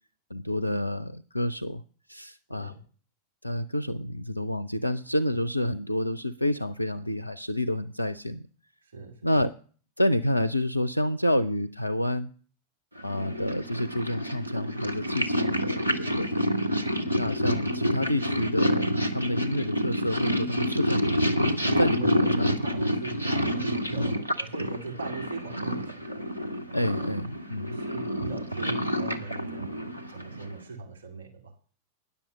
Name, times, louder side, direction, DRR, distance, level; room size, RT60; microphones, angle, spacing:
voice 1, 0.3-1.8 2.1-2.7 3.4-8.5 9.2-9.5 10.0-12.3 13.0-16.4 17.1-21.5 21.8-22.9 24.0-24.1 26.7-27.8, left 1 dB, 85° left, 11 dB, 0.4 m, -29 dB
voice 2, 2.5-2.8 8.8-9.3 21.6-26.0 26.8-27.1 27.7-31.6, right 3 dB, 65° right, 2 dB, 2.4 m, -40 dB
Purr, 13.0-30.6, equal, 85° right, 1.2 m, -28 dB
10.5 x 7.1 x 8.0 m, 0.42 s
figure-of-eight pair, 90°, 0 cm